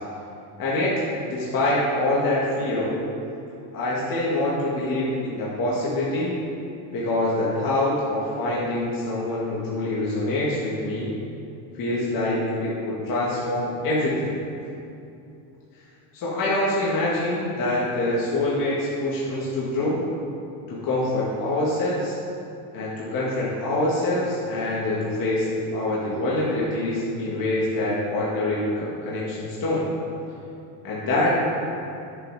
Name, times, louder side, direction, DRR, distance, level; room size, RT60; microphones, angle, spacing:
voice 1, 0.6-0.9 1.2-3.0 3.7-6.3 6.9-11.1 11.7-14.3 16.1-20.0 20.7-22.2 22.7-29.8 30.8-31.4, left 1 dB, 45° left, -7 dB, 2.2 m, -25 dB
10.0 x 7.8 x 4.9 m, 2.7 s
cardioid pair, 140°, 48 cm